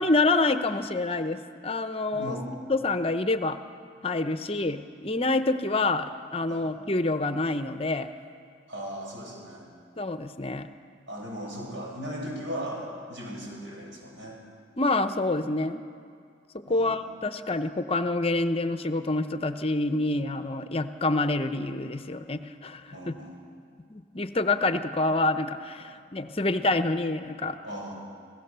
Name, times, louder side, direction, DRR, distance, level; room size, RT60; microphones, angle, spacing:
voice 1, 0.0-2.4 2.7-3.6 4.0-8.1 10.0-10.7 14.8-15.8 16.5-23.2 23.9-27.6, left 2 dB, 30° left, 10 dB, 0.7 m, -27 dB
voice 2, 2.1-2.6 4.5-4.6 6.5-6.6 8.7-9.7 11.1-14.4 16.7-16.9 22.9-23.4 25.8-25.9 27.6-28.0, equal, 90° right, -1 dB, 6.9 m, -37 dB
28.0 x 17.0 x 6.8 m, 2.3 s
head